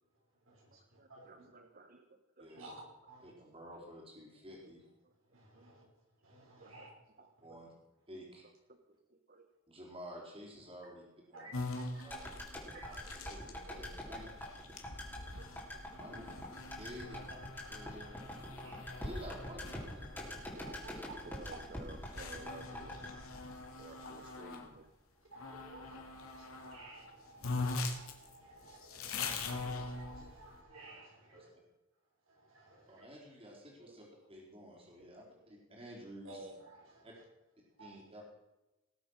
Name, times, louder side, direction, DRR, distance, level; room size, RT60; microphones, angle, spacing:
voice 1, 0.5-1.3 2.6-3.3 5.3-5.8 6.2-6.9 11.3-11.5 11.9-12.2 12.7-13.0 17.7-17.9 18.6-19.0 20.6-21.3 25.3-31.5 32.3-33.1 36.2-37.1 37.8-38.0, right 2 dB, 70° right, -2 dB, 5.8 m, -54 dB
voice 2, 1.0-2.6 5.0-5.1 5.5-5.7 6.4-6.8 7.2-7.6 8.4-8.8 9.1-9.5 12.7-13.8 14.4-14.5 15.2-16.4 20.7-23.0 23.8-24.9 33.8-34.0 35.0-35.3, right 2 dB, 40° right, 6 dB, 1.2 m, -56 dB
voice 3, 2.4-2.7 3.2-4.8 7.4-7.7 8.1-8.4 9.7-11.0 11.3-11.5 12.0-12.2 12.8-13.0 13.3-14.3 16.0-16.2 16.8-17.3 17.7-18.2 19.0-20.0 31.3-31.5 32.9-36.4 37.0-37.1 37.8-38.2, equal, 25° right, -2 dB, 4.4 m, -51 dB
sound 1, 11.5-24.7 25.4-26.8 27.1-27.2 27.4-30.5, left 3 dB, 85° left, 2.4 m, -43 dB
sound 2, 12.1-24.3 24.6-24.7, left 1 dB, 10° left, 3.5 m, -45 dB
19.0 x 7.9 x 6.4 m, 1.0 s
head